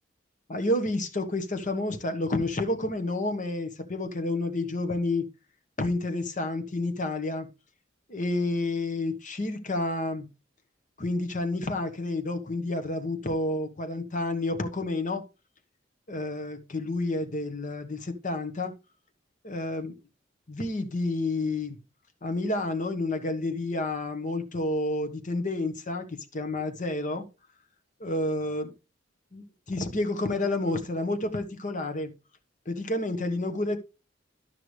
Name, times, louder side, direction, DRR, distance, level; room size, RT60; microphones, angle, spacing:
voice 1, 0.5-5.3 5.8-7.5 8.1-10.3 11.0-15.2 16.1-18.7 19.4-19.9 20.5-21.8 22.2-27.3 28.0-28.7 29.3-32.1 32.6-33.8, left 2 dB, 45° left, 1.3 m, -30 dB
12.5 x 5.9 x 3.2 m
head